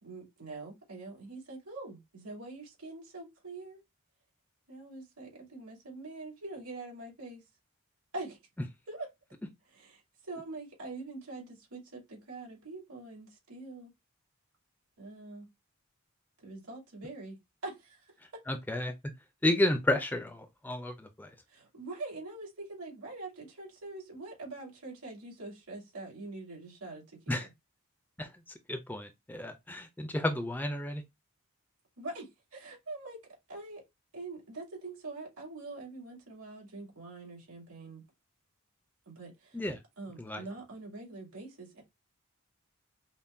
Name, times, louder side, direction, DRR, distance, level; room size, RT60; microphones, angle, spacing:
voice 1, 0.0-3.8 4.7-7.4 8.1-8.4 8.9-9.1 9.7-13.9 15.0-15.5 16.4-18.4 21.5-27.5 32.0-33.2 33.5-33.8 34.1-38.0 39.0-39.6 40.0-41.8, right 2 dB, 80° right, 2.6 m, -44 dB
voice 2, 18.5-18.9 19.4-21.3 27.3-27.5 28.2-28.3 28.7-31.0 39.5-39.8 40.2-40.4, left 1 dB, 10° left, 0.3 m, -31 dB
5.5 x 2.1 x 2.5 m
head